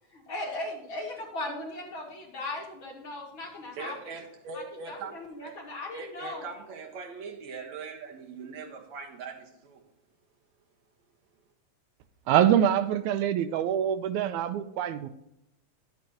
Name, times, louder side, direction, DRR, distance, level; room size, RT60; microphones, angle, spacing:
voice 1, 0.1-3.9 4.5-6.5, left 2 dB, 45° left, 2.6 m, -38 dB
voice 2, 3.7-5.1 5.4-5.6 5.9-9.8, right 5 dB, 70° right, 2.5 m, -41 dB
voice 3, 12.3-15.1, right 10 dB, 85° right, 2.0 m, -25 dB
11.5 x 8.4 x 2.9 m
omnidirectional pair, 3.3 m